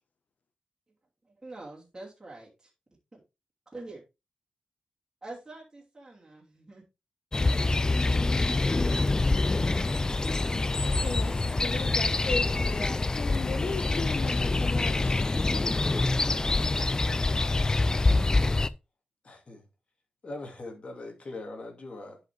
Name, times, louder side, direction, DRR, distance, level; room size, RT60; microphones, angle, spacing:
voice 1, 1.2-2.7 3.1-3.2 3.7-4.0 5.2-6.8, right 2 dB, 20° right, 2.8 m, -45 dB
sound 1, 7.3-18.7, left 2 dB, 25° left, 0.4 m, -26 dB
voice 2, 10.8-15.3, left 4 dB, 60° left, 1.4 m, -37 dB
voice 3, 19.2-19.6 20.2-22.2, left 2 dB, 40° left, 2.3 m, -41 dB
10.5 x 5.2 x 3.5 m
wide cardioid pair, 110°, 3 cm